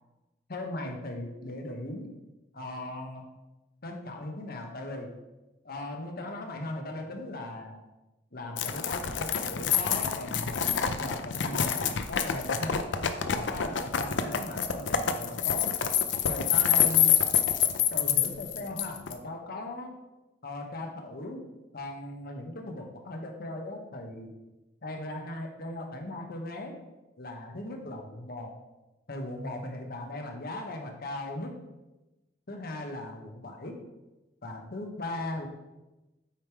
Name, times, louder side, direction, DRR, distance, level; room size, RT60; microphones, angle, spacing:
voice 1, 0.5-2.1 2.5-3.3 3.8-5.1 5.6-7.8 8.3-12.9 13.3-15.7 16.3-17.2 17.9-19.9 20.4-21.5 21.7-24.3 24.8-26.8 27.2-28.5 29.1-31.6 32.5-33.8 34.4-35.5, left 1 dB, 55° left, 3 dB, 1.1 m, -38 dB
sound 1, 8.6-19.1, left 8 dB, 75° left, 0.6 m, -27 dB
8.8 x 3.6 x 4.7 m, 1.0 s
head